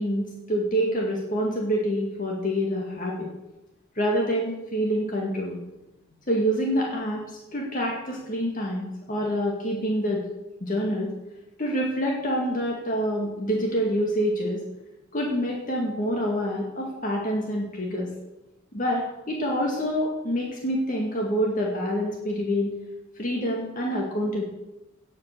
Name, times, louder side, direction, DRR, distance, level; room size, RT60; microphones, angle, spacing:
voice 1, 0.0-3.3 4.0-5.6 6.3-7.2 7.5-10.2 10.6-11.1 11.6-14.6 15.1-18.1 18.7-22.7 23.2-24.4, equal, 40° left, -1 dB, 2.1 m, -26 dB
17.5 x 5.9 x 6.7 m, 0.96 s
head